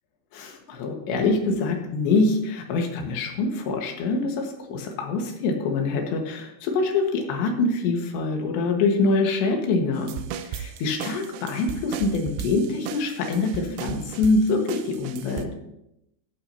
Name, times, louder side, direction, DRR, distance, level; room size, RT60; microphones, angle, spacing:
voice 1, 0.3-10.1 10.5-15.5, left 3 dB, 80° left, 2 dB, 3.7 m, -25 dB
sound 1, 10.0-15.5, right 8 dB, 80° right, 2.7 m, -36 dB
14.5 x 11.5 x 2.8 m, 0.82 s
omnidirectional pair, 5.2 m